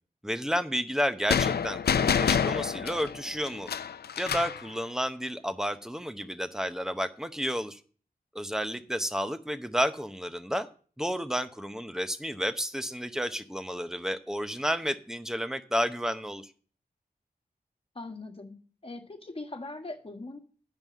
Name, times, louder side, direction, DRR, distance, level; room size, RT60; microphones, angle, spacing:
voice 1, 0.2-3.7 4.2-7.8 8.3-10.7 11.0-16.5, equal, 5° right, 10 dB, 0.8 m, -31 dB
sound 1, 1.3-4.6, left 7 dB, 85° left, 0.5 m, -27 dB
voice 2, 17.9-18.5 18.8-20.4, left 2 dB, 35° left, 4 dB, 1.6 m, -40 dB
9.3 x 5.3 x 7.3 m, 0.42 s
wide cardioid pair, 75°, 16 cm